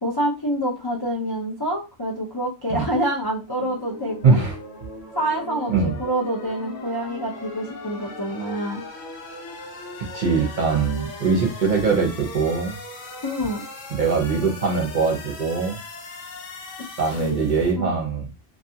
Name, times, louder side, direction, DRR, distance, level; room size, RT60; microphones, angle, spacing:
voice 1, 0.0-4.4 5.1-8.8 13.2-13.6 17.2-17.4 17.8-17.9, right 1 dB, 35° left, -4 dB, 0.4 m, -27 dB
sound 1, 3.6-17.7, left 2 dB, 85° left, 1.2 m, -39 dB
voice 2, 4.2-4.6 5.7-5.9 10.1-12.7 13.9-15.8 17.0-18.3, right 4 dB, 45° right, 1 dB, 0.8 m, -22 dB
2.6 x 2.3 x 2.7 m, 0.28 s
omnidirectional pair, 1.3 m